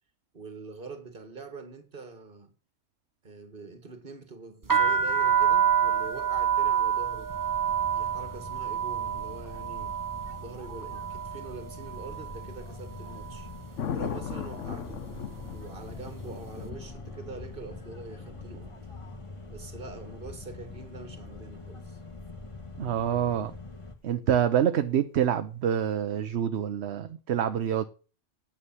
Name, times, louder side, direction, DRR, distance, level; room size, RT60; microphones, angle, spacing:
voice 1, 0.3-2.5 3.2-7.3 7.9-9.9 10.4-13.5 13.9-15.1 15.5-18.8 19.5-22.0, right 4 dB, 45° right, 1.8 m, -44 dB
sound 1, 4.6-12.6 12.8-13.5 14.1-14.4 14.7-16.1, right 8 dB, 20° right, 0.7 m, -28 dB
sound 2, 7.3-24.0, left 3 dB, 25° left, 1.4 m, -44 dB
Thunder, 13.8-21.8 24.5-24.9, left 8 dB, 85° left, 1.2 m, -40 dB
voice 2, 22.8-23.5 24.0-27.9, right 9 dB, 65° right, 1.0 m, -26 dB
9.7 x 7.5 x 7.2 m
omnidirectional pair, 1.2 m